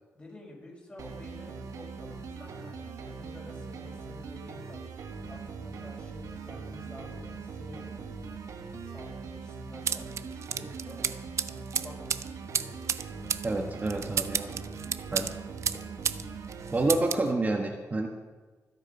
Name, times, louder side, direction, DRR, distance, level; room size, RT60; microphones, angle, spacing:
voice 1, 0.1-4.9 5.3-8.3 8.8-11.0 11.4-12.8 14.8-15.3, left 1 dB, 20° left, -2 dB, 5.4 m, -50 dB
sound 1, 1.0-17.0, right 5 dB, 85° right, 1.6 m, -41 dB
sound 2, 9.9-16.2 16.5-17.3, right 7 dB, 55° right, 0.6 m, -32 dB
voice 2, 13.4-14.6 15.1-15.3 16.7-18.1, right 2 dB, 30° right, 2 dB, 1.3 m, -28 dB
24.5 x 8.3 x 5.4 m, 1.3 s
wide cardioid pair, 115°, 6 cm